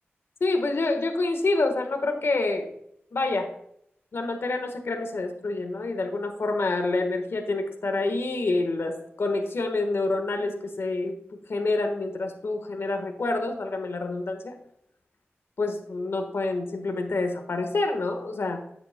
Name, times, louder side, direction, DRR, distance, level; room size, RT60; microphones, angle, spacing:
voice 1, 0.4-2.7 3.1-3.5 4.1-11.2 11.5-14.6 15.6-18.6, left 2 dB, 75° left, 5 dB, 1.4 m, -27 dB
9.7 x 8.2 x 2.2 m, 0.70 s
wide cardioid pair, 80°, 4 cm